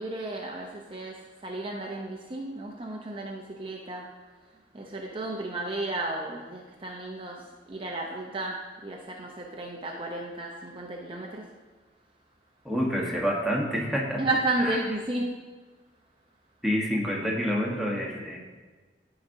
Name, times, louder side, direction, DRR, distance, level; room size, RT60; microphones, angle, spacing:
voice 1, 0.0-4.1 4.7-11.5 14.2-15.4, right 2 dB, 30° right, 0 dB, 0.6 m, -33 dB
voice 2, 12.6-14.2 14.6-14.8 16.6-18.4, equal, ahead, -3 dB, 1.2 m, -28 dB
13.5 x 5.0 x 2.7 m, 1.3 s
head